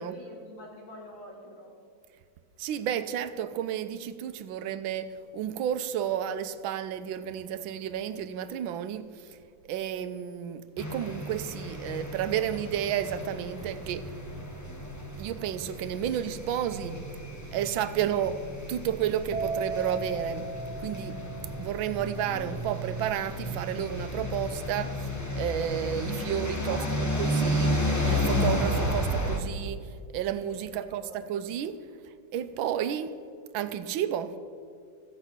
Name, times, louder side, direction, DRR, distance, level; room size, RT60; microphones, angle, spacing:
voice 1, 0.0-1.7 26.6-27.5 30.7-31.2, left 1 dB, 70° left, 3.2 m, -46 dB
voice 2, 2.6-9.4 9.6-14.1 15.2-17.0 17.5-18.4 18.7-20.5 20.8-21.2 21.6-27.7 28.0-31.8 32.0-33.1 33.5-34.3, right 9 dB, 85° right, 1.4 m, -32 dB
sound 1, 10.8-29.4, equal, 15° left, 0.8 m, -32 dB
sound 2, 19.3-26.9 27.2-27.6, right 2 dB, 55° right, 1.6 m, -38 dB
15.0 x 8.0 x 6.0 m
omnidirectional pair, 2.2 m